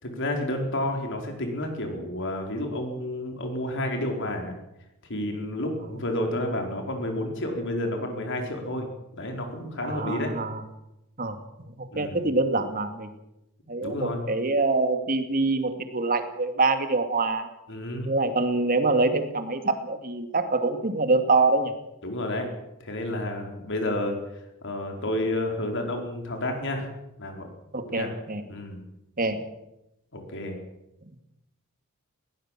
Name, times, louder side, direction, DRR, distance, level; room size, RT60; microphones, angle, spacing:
voice 1, 0.0-4.5 5.1-8.9 9.2-10.3 11.9-12.2 13.8-14.2 17.7-18.1 22.0-22.5 22.8-24.2 24.6-26.9 27.2-27.5 27.9-28.1 28.5-28.8 30.1-30.6, left 1 dB, 60° left, 3 dB, 4.8 m, -30 dB
voice 2, 9.8-10.6 11.2-11.4 11.7-13.1 13.7-17.5 18.0-21.7 27.7-28.4 29.2-29.4, right 3 dB, 40° right, 7 dB, 2.4 m, -25 dB
21.0 x 17.5 x 7.6 m, 0.88 s
head